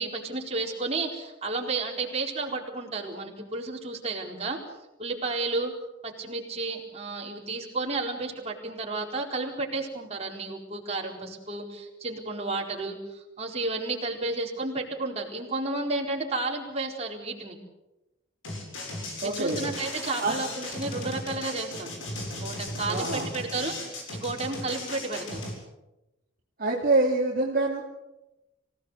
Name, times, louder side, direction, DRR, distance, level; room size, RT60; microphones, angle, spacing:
voice 1, 0.0-4.6 5.0-5.7 6.0-17.6 19.2-21.9 22.4-25.4, right 3 dB, 35° right, 0 dB, 4.4 m, -32 dB
sound 1, 18.4-25.5, left 1 dB, 90° left, 7.6 m, -36 dB
voice 2, 19.2-19.6 20.2-20.4 22.9-23.3 26.6-27.8, right 2 dB, 50° right, -2 dB, 3.0 m, -25 dB
26.0 x 17.0 x 8.2 m, 0.97 s
head